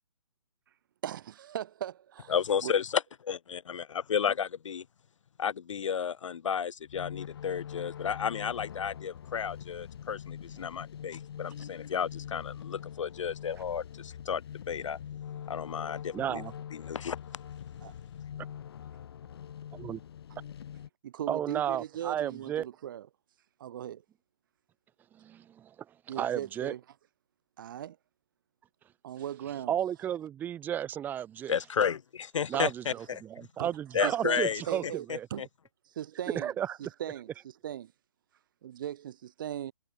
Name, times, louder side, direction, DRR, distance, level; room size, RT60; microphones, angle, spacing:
voice 1, 1.0-2.3 2.6-2.7 13.6-13.7 17.8-17.9 21.0-23.1 23.6-24.0 26.1-26.8 27.6-28.0 29.0-29.7 32.5-32.7 33.6-33.8 34.0-35.5 35.9-36.5 36.8-37.9 38.6-39.7, right 11 dB, 35° right, 1.3 m, -38 dB
voice 2, 2.3-4.8 5.4-15.0 15.5-16.4 16.7-17.2 31.5-33.2 33.9-34.6 35.4-35.5, left 7 dB, 65° left, 0.6 m, -32 dB
sound 1, 6.8-20.9, left 9 dB, 45° left, 1.8 m, -43 dB
voice 3, 16.1-16.5 19.8-20.0 21.3-22.7 25.2-25.7 26.2-26.7 29.7-31.6 32.5-34.8 35.1-35.3 36.3-36.8, right 10 dB, 10° right, 1.8 m, -33 dB
hypercardioid pair, 160°, 18 cm